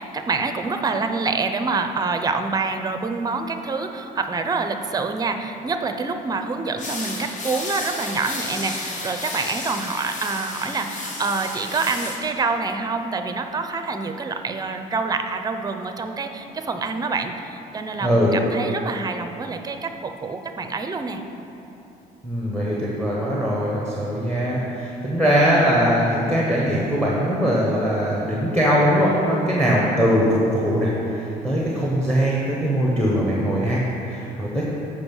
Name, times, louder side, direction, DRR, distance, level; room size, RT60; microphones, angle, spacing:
voice 1, 0.0-21.2, right 4 dB, 20° right, 6 dB, 0.5 m, -26 dB
sound 1, 6.8-12.2, left 2 dB, 45° left, 1.2 m, -32 dB
voice 2, 18.0-18.3 22.2-34.6, equal, 5° left, -5 dB, 1.2 m, -21 dB
7.8 x 5.4 x 5.4 m, 3.0 s
cardioid pair, 110°, 17 cm